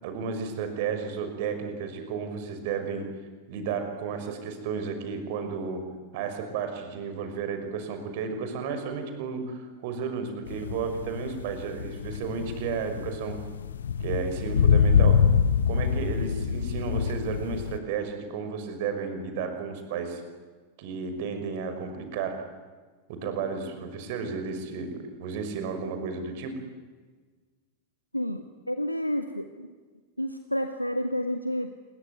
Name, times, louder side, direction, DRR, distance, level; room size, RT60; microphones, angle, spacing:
voice 1, 0.0-3.1 3.5-5.8 6.1-13.4 14.0-15.2 15.6-20.2 20.8-22.4 23.1-26.6, right 5 dB, 50° right, 7 dB, 5.9 m, -33 dB
sound 1, 10.5-17.8, left 7 dB, 65° left, 1.0 m, -25 dB
voice 2, 28.1-29.7 30.2-31.8, equal, 90° left, 7 dB, 1.4 m, -30 dB
28.5 x 22.0 x 9.5 m, 1.4 s
figure-of-eight pair, 90°, 0 cm